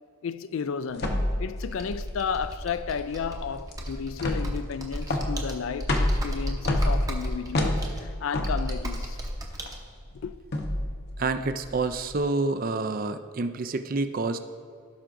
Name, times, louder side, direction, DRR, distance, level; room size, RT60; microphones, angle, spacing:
voice 1, 0.2-9.2 10.2-10.4, left 6 dB, 65° left, 0.3 m, -33 dB
sound 1, 1.0-12.2, left 1 dB, 50° left, 0.8 m, -29 dB
Computer keyboard, 1.6-9.8, equal, 15° right, 0.8 m, -37 dB
voice 2, 11.2-14.4, right 3 dB, 40° right, 0.4 m, -28 dB
16.5 x 5.8 x 2.6 m
head